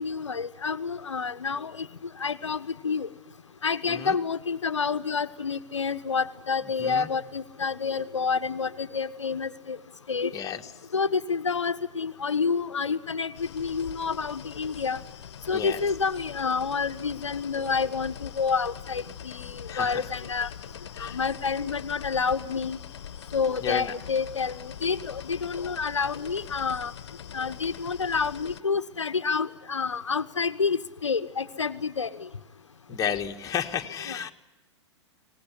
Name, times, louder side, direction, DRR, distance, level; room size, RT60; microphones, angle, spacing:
voice 1, 0.0-1.9 2.2-3.1 3.6-9.8 10.1-10.3 10.9-15.0 15.5-20.5 21.0-22.8 23.3-26.9 27.3-32.1 34.1-34.3, left 5 dB, 80° left, 12 dB, 0.8 m, -28 dB
sound 1, 13.3-28.6, left 9 dB, 60° left, 1.0 m, -43 dB
voice 2, 15.5-15.8 19.7-20.0 20.9-21.2 23.6-23.9 32.9-34.3, left 8 dB, 20° left, 3 dB, 1.6 m, -32 dB
24.0 x 19.0 x 9.8 m, 1.1 s
figure-of-eight pair, 100°, 15 cm